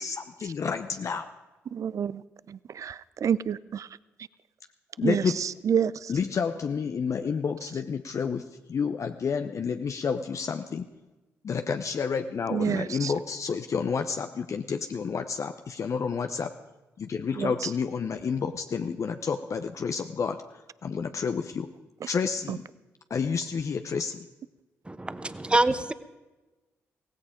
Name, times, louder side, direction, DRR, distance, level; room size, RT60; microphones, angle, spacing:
voice 1, 0.0-1.3 5.0-5.4 6.1-10.9 11.4-16.5 17.0-20.4 20.8-21.7 22.1-22.6 23.1-24.3, left 6 dB, 55° left, 0.7 m, -30 dB
voice 2, 1.7-2.2 2.5-3.9 5.0-6.1 12.5-13.1 17.3-17.7 22.5-22.6, right 8 dB, 55° right, 0.5 m, -29 dB
voice 3, 24.8-25.9, right 2 dB, 15° right, 1.1 m, -25 dB
16.5 x 16.0 x 5.1 m
hypercardioid pair, 45°, 6 cm